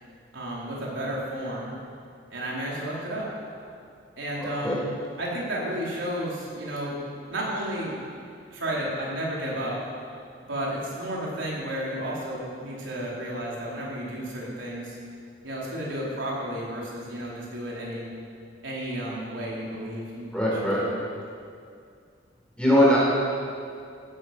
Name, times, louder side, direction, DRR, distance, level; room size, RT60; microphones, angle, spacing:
voice 1, 0.3-1.7 2.3-3.3 4.2-4.9 5.2-7.0 7.3-7.9 8.5-9.8 10.4-15.0 15.4-18.1 18.6-20.9, right 1 dB, 85° right, -5 dB, 4.4 m, -32 dB
voice 2, 4.4-4.8 20.3-20.8 22.6-23.0, equal, 5° left, -6 dB, 4.4 m, -21 dB
16.0 x 13.5 x 6.1 m, 2.3 s
head